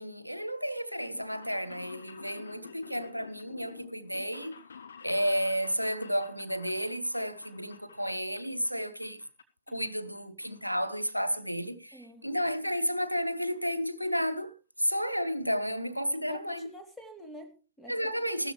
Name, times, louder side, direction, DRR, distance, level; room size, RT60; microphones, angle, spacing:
voice 1, 0.0-4.5 5.0-9.2 9.7-16.7 17.9-18.5, equal, 90° right, 0.7 m, -32 dB
sound 1, 1.0-8.7 9.0-9.7 10.0-11.1 11.4-11.5 12.4-12.5 12.7-12.8 13.0-13.1 13.4-13.7 14.1-14.2 14.4-14.5, left 6 dB, 70° left, 1.2 m, -50 dB
voice 2, 11.9-12.4 16.3-18.5, equal, 10° left, 3.1 m, -48 dB
15.0 x 13.0 x 3.1 m
figure-of-eight pair, 90°, 0 cm